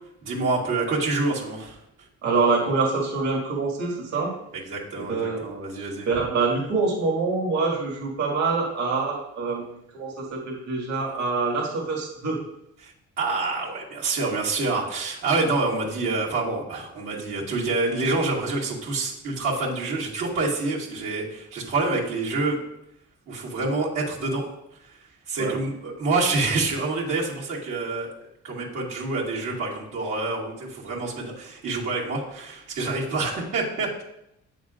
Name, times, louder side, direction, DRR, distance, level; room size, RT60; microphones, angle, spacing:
voice 1, 0.2-1.8 4.5-6.1 12.8-22.6 23.3-24.5 24.8-25.0 25.3-28.1 28.4-34.0, right 3 dB, 85° right, -6 dB, 2.3 m, -27 dB
voice 2, 2.2-4.3 4.9-5.4 5.7-12.4 25.4-25.5, right 4 dB, 65° right, -4 dB, 2.1 m, -25 dB
8.9 x 7.1 x 2.5 m, 0.80 s
cardioid pair, 90°, 30 cm